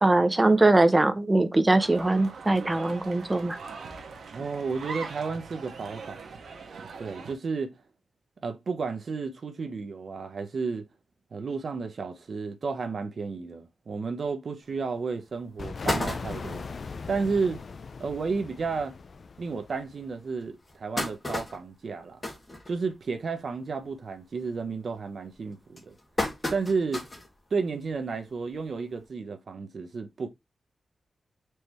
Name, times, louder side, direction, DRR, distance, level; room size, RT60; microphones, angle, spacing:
voice 1, 0.0-3.6, right 2 dB, 20° right, 0.7 m, -21 dB
sound 1, 1.7-7.3, right 5 dB, 90° right, 1.0 m, -41 dB
voice 2, 4.3-6.2 7.0-7.7 8.4-10.9 11.3-16.7 17.1-17.6 18.0-19.0 19.4-22.2 22.7-25.9 26.5-27.0 27.5-30.3, right 4 dB, 60° right, 0.8 m, -32 dB
sound 2, 14.7-14.8 15.3-15.4 15.6-16.7 17.3-17.4 17.6-17.7 18.1-18.2 18.9-19.0 19.6-19.7 20.4-23.2 23.6-23.9 24.3-24.7 25.3-27.3 27.8-27.9 29.0-29.1, left 1 dB, 25° left, 1.7 m, -33 dB
sound 3, 15.6-20.2, left 4 dB, 55° left, 0.4 m, -39 dB
4.6 x 3.4 x 3.0 m
wide cardioid pair, 110°, 0 cm